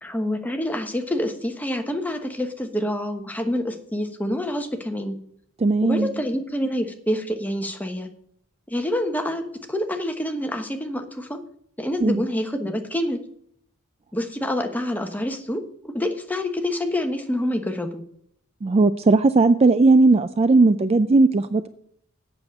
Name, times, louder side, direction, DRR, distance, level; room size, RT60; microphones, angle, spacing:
voice 1, 0.0-5.2 5.8-8.1 8.7-11.4 11.8-13.2 14.1-18.0, left 1 dB, 10° left, 5 dB, 1.1 m, -27 dB
voice 2, 5.6-6.1 12.0-12.2 18.6-21.7, right 3 dB, 30° right, 12 dB, 0.4 m, -17 dB
8.1 x 6.8 x 7.9 m, 0.68 s
head